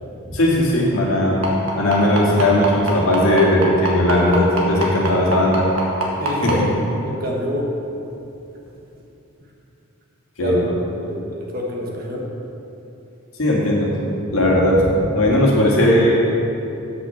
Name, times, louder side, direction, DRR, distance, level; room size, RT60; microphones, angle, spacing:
voice 1, 0.3-1.4 1.8-5.7 6.4-6.5 10.4-10.6 13.4-14.0 14.3-16.1, left 1 dB, 65° left, -3 dB, 1.9 m, -17 dB
sound 1, 1.4-6.5 7.6-7.7 8.1-8.2 8.7-8.8, right 3 dB, 60° right, 1.6 m, -23 dB
voice 2, 6.2-6.6 7.0-7.7 10.4-12.3, equal, 40° right, -1 dB, 1.3 m, -27 dB
8.1 x 6.1 x 7.0 m, 2.9 s
head